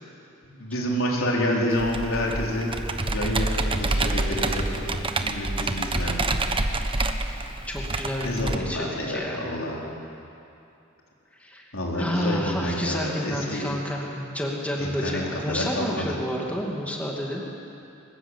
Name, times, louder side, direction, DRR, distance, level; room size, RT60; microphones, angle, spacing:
voice 1, 0.4-2.7 3.1-6.3 8.2-9.8 11.7-13.7 14.8-16.1, left 1 dB, 70° left, -2 dB, 4.5 m, -28 dB
Computer keyboard, 1.8-8.5, right 2 dB, 25° right, 1.1 m, -27 dB
voice 2, 7.7-9.4 11.4-11.6 11.9-17.4, equal, 5° left, -2 dB, 2.4 m, -30 dB
22.0 x 20.5 x 8.3 m, 2.7 s
head